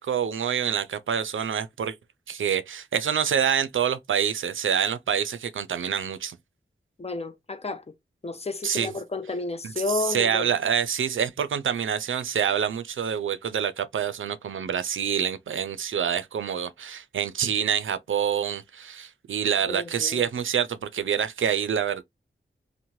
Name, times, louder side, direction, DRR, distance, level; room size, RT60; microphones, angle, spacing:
voice 1, 0.0-2.0 2.3-6.4 8.6-8.9 9.6-22.0, right 8 dB, 80° right, 0.4 m, -26 dB
voice 2, 7.0-7.8 8.2-10.5 19.6-20.3, left 3 dB, 30° left, 0.5 m, -31 dB
3.0 x 2.1 x 2.6 m
wide cardioid pair, 65°, 21 cm